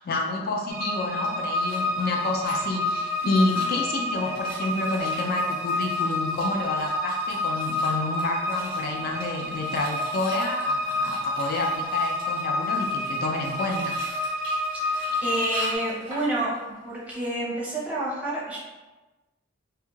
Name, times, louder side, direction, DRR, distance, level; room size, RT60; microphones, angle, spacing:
voice 1, 0.0-14.3, left 2 dB, 50° left, 1 dB, 0.3 m, -29 dB
sound 1, 0.7-15.8, left 1 dB, 50° right, 0.4 m, -29 dB
sound 2, 1.2-16.8 17.1-17.3, equal, 80° left, 1.4 m, -45 dB
voice 2, 14.8-16.5 16.8-18.6, right 1 dB, 10° right, -7 dB, 0.7 m, -29 dB
2.3 x 2.2 x 3.0 m, 1.2 s
head